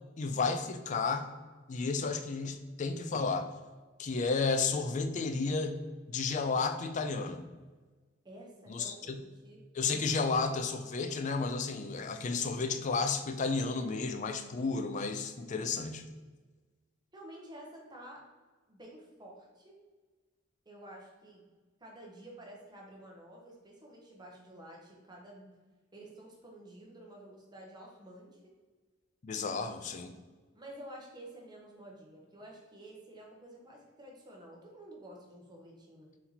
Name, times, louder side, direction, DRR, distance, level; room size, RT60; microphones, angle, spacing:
voice 1, 0.2-1.3 1.7-3.4 4.0-5.8 6.1-7.5 8.7-9.2 9.7-16.0 29.2-30.1, left 4 dB, 40° left, 8 dB, 0.3 m, -32 dB
voice 2, 8.2-9.6 17.1-18.2 18.7-19.8 20.7-21.4 21.8-25.5 25.9-28.4 30.5-36.1, right 1 dB, 20° right, -1 dB, 0.8 m, -51 dB
4.2 x 2.8 x 4.0 m, 1.3 s
head